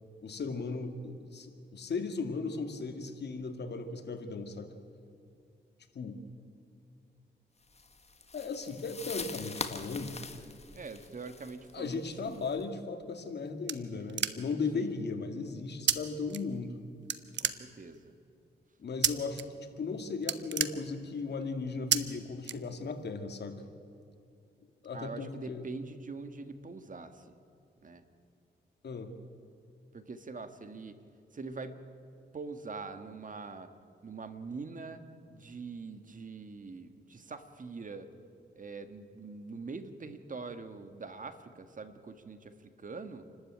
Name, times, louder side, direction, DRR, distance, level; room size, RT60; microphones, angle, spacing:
voice 1, 0.2-4.7 5.9-6.2 8.3-10.2 11.7-16.7 18.8-23.6 24.8-25.6 28.8-29.1, left 4 dB, 65° left, 6 dB, 2.2 m, -37 dB
sound 1, 7.7-12.6, left 4 dB, 35° left, 1.7 m, -43 dB
voice 2, 10.7-12.6 13.9-14.0 14.7-14.9 17.4-18.1 24.9-27.3 27.8-28.0 29.9-31.0 31.3-31.8 32.3-33.7 34.0-35.0 35.3-38.1 38.5-43.3, right 4 dB, 45° right, 9 dB, 1.7 m, -43 dB
sound 2, 13.0-14.7 15.9-16.0 16.3-16.8 17.1-18.1 19.0-19.4 19.8-19.9 20.2-21.3 21.9-22.0 22.4-23.1, right 9 dB, 75° right, 1.0 m, -31 dB
28.0 x 13.0 x 9.0 m, 2.5 s
cardioid pair, 75°, 19 cm